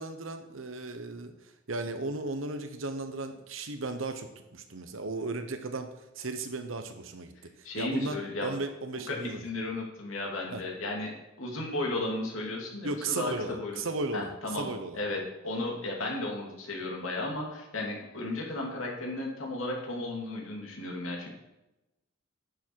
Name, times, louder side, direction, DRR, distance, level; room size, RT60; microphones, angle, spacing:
voice 1, 0.0-5.9 6.1-7.3 7.8-9.4 10.5-10.6 12.8-15.0, right 3 dB, 80° right, 8 dB, 1.1 m, -35 dB
voice 2, 7.6-8.5 9.1-13.8 14.1-21.3, left 2 dB, 85° left, -1 dB, 2.6 m, -34 dB
10.5 x 7.3 x 4.7 m, 0.96 s
head